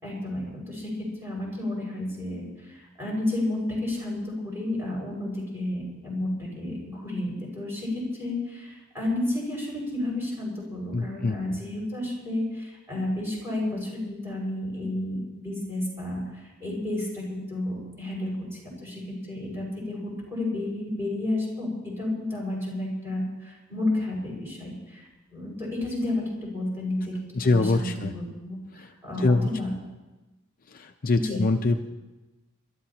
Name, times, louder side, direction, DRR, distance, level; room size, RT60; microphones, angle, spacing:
voice 1, 0.0-29.7 31.1-31.4, left 1 dB, 10° right, -4 dB, 5.6 m, -31 dB
voice 2, 10.9-11.6 27.3-28.1 28.8-28.9 29.2-29.5 30.7-31.8, left 3 dB, 45° left, 5 dB, 0.6 m, -24 dB
26.5 x 13.0 x 2.9 m, 1.1 s
head